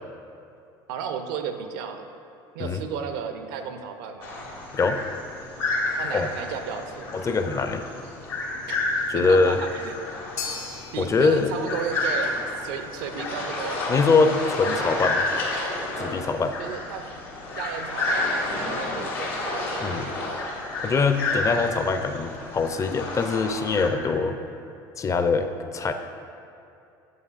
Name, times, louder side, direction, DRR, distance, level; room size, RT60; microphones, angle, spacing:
voice 1, 0.9-2.1 2.5-4.4 6.0-7.1 8.7-8.8 9.1-10.0 10.9-13.8 16.6-17.1 17.6-20.1, right 7 dB, 70° right, 7 dB, 0.6 m, -34 dB
sound 1, 4.2-23.9, left 2 dB, 85° left, 1.3 m, -30 dB
voice 2, 7.2-7.8 9.1-9.6 11.0-11.5 13.9-15.2 16.0-16.5 19.8-20.1 20.8-24.4 25.0-25.5 25.7-25.9, left 4 dB, 25° left, 8 dB, 0.5 m, -23 dB
sound 2, 10.4-18.7, left 5 dB, 65° left, 1.2 m, -43 dB
8.3 x 7.1 x 2.4 m, 2.7 s
hypercardioid pair, 75°, 11 cm